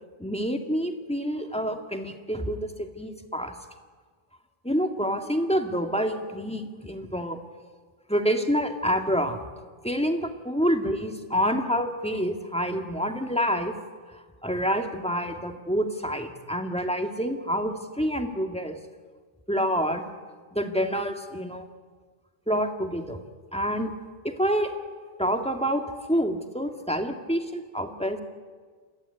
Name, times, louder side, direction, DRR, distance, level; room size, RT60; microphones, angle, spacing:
voice 1, 0.2-3.5 4.6-7.4 8.1-9.4 9.8-13.8 14.4-18.8 19.5-20.0 20.5-21.7 22.5-23.2 23.5-23.9 24.2-24.7 25.2-28.2, equal, 5° left, 4 dB, 1.8 m, -27 dB
29.0 x 15.0 x 9.6 m, 1.5 s
omnidirectional pair, 1.0 m